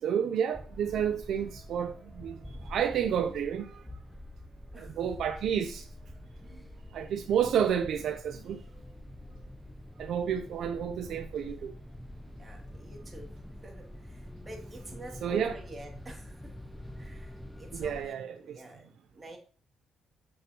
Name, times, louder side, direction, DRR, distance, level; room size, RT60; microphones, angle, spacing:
voice 1, 0.0-3.8 4.8-5.9 6.9-8.6 10.0-11.7 15.2-15.6 17.7-18.6, right 8 dB, 70° right, 0.6 m, -30 dB
sound 1, 0.5-18.1, left 1 dB, 5° left, 0.6 m, -46 dB
voice 2, 12.4-13.3 13.6-16.5 16.9-19.4, right 1 dB, 25° right, 2.8 m, -48 dB
8.0 x 6.3 x 3.0 m
cardioid pair, 90°, 0 cm